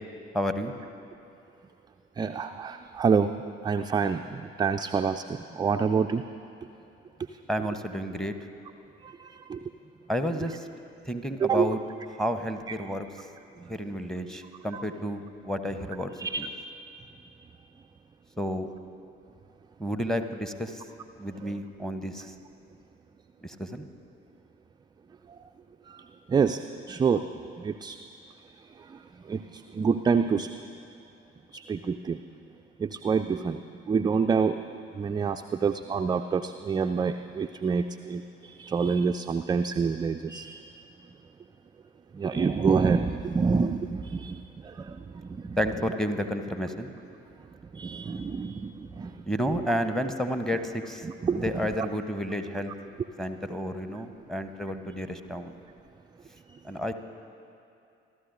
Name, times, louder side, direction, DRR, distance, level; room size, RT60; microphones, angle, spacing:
voice 1, 0.3-0.7 7.5-8.3 10.1-10.7 11.1-11.8 12.2-13.1 13.7-16.5 18.4-18.7 19.8-20.8 21.2-22.3 23.4-23.9 45.6-46.9 49.3-51.1 51.3-52.7 53.2-55.6 56.6-56.9, equal, ahead, 8 dB, 0.9 m, -31 dB
voice 2, 2.2-3.3 3.6-6.2 9.0-9.2 9.5-9.6 11.4-11.7 14.7-14.8 16.2-16.5 25.9-26.0 26.3-26.6 26.9-27.2 27.6-28.0 29.3-30.5 31.5-32.2 32.8-33.6 33.9-34.6 35.0-40.6 42.1-45.0 45.3-45.6 47.7-49.1 51.2-51.4, right 5 dB, 15° right, 6 dB, 0.3 m, -27 dB
27.0 x 12.5 x 2.6 m, 2.7 s
figure-of-eight pair, 45°, 31 cm